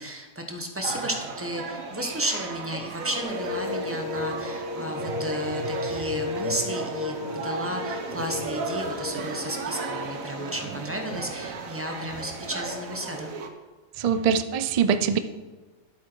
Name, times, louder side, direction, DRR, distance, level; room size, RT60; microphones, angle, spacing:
voice 1, 0.0-13.3, equal, 10° right, 3 dB, 1.0 m, -33 dB
sound 1, 0.8-13.5, right 4 dB, 90° right, 1.4 m, -35 dB
sound 2, 3.2-10.1, left 3 dB, 40° left, 1.5 m, -33 dB
voice 2, 14.0-15.2, right 7 dB, 65° right, 11 dB, 0.3 m, -23 dB
11.0 x 8.2 x 4.6 m, 1.3 s
omnidirectional pair, 1.4 m